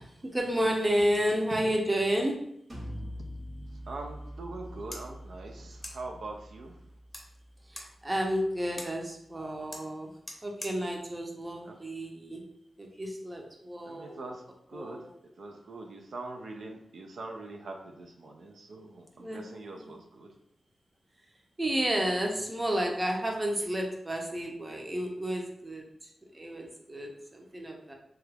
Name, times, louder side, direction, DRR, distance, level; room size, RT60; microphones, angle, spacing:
voice 1, 0.2-2.4 7.7-10.1 10.4-12.4 12.8-14.2 14.7-15.1 19.2-19.4 19.7-19.9 21.6-27.9, equal, 20° right, 1 dB, 0.6 m, -31 dB
sound 1, 2.7-8.3, equal, 40° right, 0.9 m, -44 dB
voice 2, 3.7-6.8 11.6-11.8 13.8-14.4 14.7-15.0 15.4-20.3, right 2 dB, 80° right, 2 dB, 0.4 m, -43 dB
sound 2, 4.8-12.5, left 1 dB, 20° left, 0.7 m, -49 dB
2.9 x 2.3 x 3.3 m, 0.74 s
wide cardioid pair, 85°, 0 cm